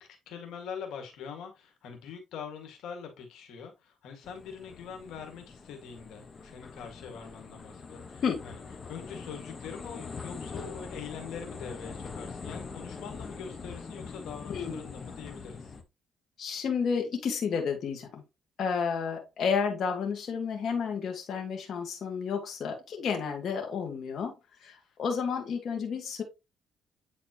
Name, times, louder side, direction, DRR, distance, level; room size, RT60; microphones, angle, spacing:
voice 1, 0.0-8.6 8.9-15.7, left 7 dB, 85° left, 1.9 m, -43 dB
sound 1, 4.2-15.8, left 4 dB, 40° left, 1.1 m, -43 dB
voice 2, 16.4-18.2 18.6-24.3 24.6-26.2, left 6 dB, 60° left, 1.8 m, -31 dB
8.7 x 4.1 x 2.9 m
cardioid pair, 90°, 0 cm